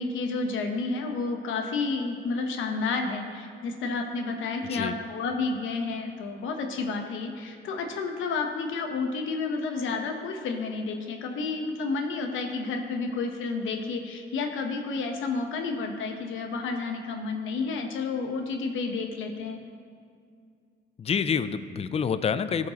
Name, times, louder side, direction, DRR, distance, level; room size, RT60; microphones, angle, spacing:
voice 1, 0.0-19.6, left 4 dB, 80° left, 4 dB, 0.9 m, -30 dB
voice 2, 21.0-22.7, left 6 dB, 30° left, 12 dB, 0.4 m, -27 dB
14.5 x 5.2 x 2.9 m, 2.2 s
cardioid pair, 90°, 20 cm